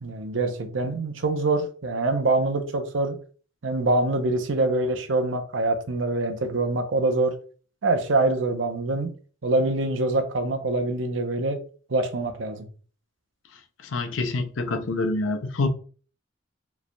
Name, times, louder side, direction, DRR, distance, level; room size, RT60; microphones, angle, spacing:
voice 1, 0.0-3.2 3.6-7.3 7.8-9.1 9.4-11.6 11.9-12.6, right 2 dB, 75° right, 0.7 m, -24 dB
voice 2, 13.8-15.7, left 3 dB, 80° left, 0.6 m, -26 dB
4.9 x 3.3 x 2.2 m
head